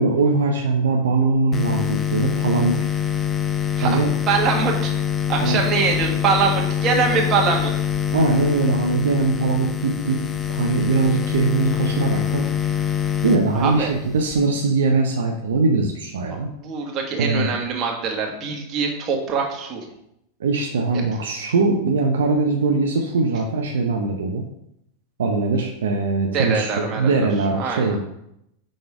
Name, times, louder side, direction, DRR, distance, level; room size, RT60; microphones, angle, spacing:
voice 1, 0.0-2.7 3.8-4.1 5.4-5.6 8.1-10.2 10.5-12.5 13.2-16.5 17.2-17.5 20.4-24.4 25.2-28.0, right 3 dB, 80° right, 2 dB, 0.7 m, -21 dB
sound 1, 1.5-14.5, left 8 dB, 25° left, 0.6 m, -25 dB
voice 2, 4.3-4.9 5.3-7.7 13.5-13.9 16.5-19.8 26.3-27.3 27.6-28.0, right 5 dB, 40° right, 1 dB, 1.5 m, -23 dB
5.1 x 3.9 x 4.8 m, 0.79 s
hypercardioid pair, 100°, 0 cm